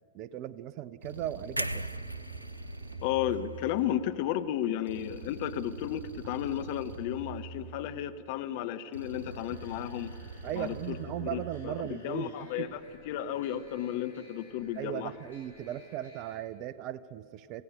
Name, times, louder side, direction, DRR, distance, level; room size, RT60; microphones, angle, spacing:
voice 1, 0.1-1.9 10.4-12.7 14.8-17.6, right 12 dB, 40° right, 17 dB, 0.7 m, -37 dB
sound 1, 1.0-4.1 4.9-8.1 8.9-11.8, right 2 dB, 65° right, 2.4 m, -44 dB
sound 2, 1.6-5.6 5.9-6.1, right 1 dB, 90° right, 0.5 m, -40 dB
voice 2, 3.0-10.1 10.5-12.8 13.1-15.1, left 11 dB, 50° left, 10 dB, 1.0 m, -33 dB
sound 3, 9.2-16.3, left 1 dB, 75° left, 5.2 m, -56 dB
26.5 x 16.5 x 6.5 m, 2.9 s
figure-of-eight pair, 90°, 0 cm